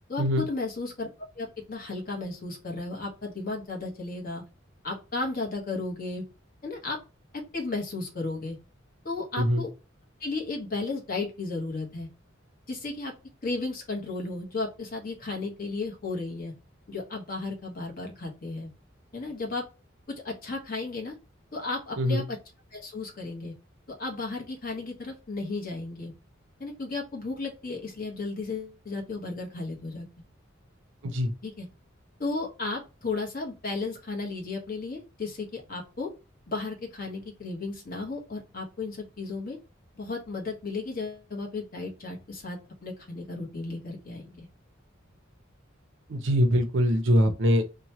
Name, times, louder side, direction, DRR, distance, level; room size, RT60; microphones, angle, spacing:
voice 1, 0.1-1.1 1.4-4.4 4.8-6.2 6.6-7.0 7.5-8.6 9.0-9.7 10.2-12.1 12.7-13.1 13.4-16.5 16.9-18.7 19.1-19.6 20.1-21.1 21.5-22.4 22.7-23.5 24.0-26.1 26.6-30.1 31.4-31.7 32.2-36.1 36.5-39.6 40.0-44.5, left 3 dB, 50° left, 1.0 m, -34 dB
voice 2, 46.1-47.6, equal, 70° right, 0.6 m, -23 dB
2.9 x 2.2 x 2.8 m
head